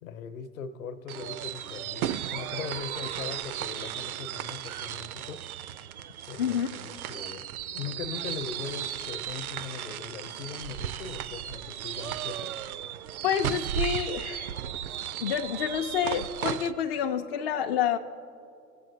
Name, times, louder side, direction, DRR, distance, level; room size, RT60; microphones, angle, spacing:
voice 1, 0.0-5.4 6.3-7.4 7.7-12.5, left 6 dB, 55° left, 10 dB, 0.9 m, -40 dB
sound 1, 1.1-16.7, right 10 dB, 65° right, 0.5 m, -35 dB
voice 2, 6.4-6.7 13.2-14.5 15.2-18.0, left 8 dB, 40° left, 4 dB, 0.4 m, -28 dB
18.5 x 7.5 x 2.7 m, 2.6 s
figure-of-eight pair, 95°, 48 cm